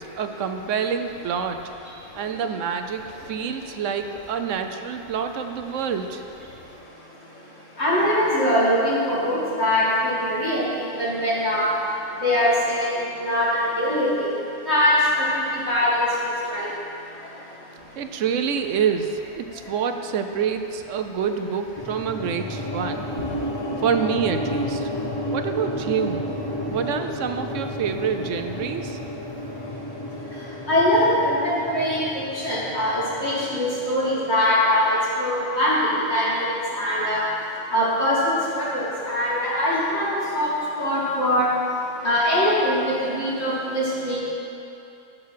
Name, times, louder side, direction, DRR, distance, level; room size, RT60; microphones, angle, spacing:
voice 1, 0.0-1.6 2.1-6.2 18.0-23.1 23.8-24.9 25.3-26.3 26.6-29.0, right 7 dB, 65° right, 7 dB, 0.9 m, -27 dB
voice 2, 7.8-11.7 12.2-12.9 13.2-14.3 14.7-16.7 30.7-37.2 37.7-40.1 40.3-41.5 42.0-44.2, left 1 dB, 45° left, -9 dB, 2.7 m, -22 dB
sound 1, 21.8-34.0, left 1 dB, 20° left, 0.8 m, -31 dB
13.0 x 6.7 x 5.7 m, 2.8 s
omnidirectional pair, 1.5 m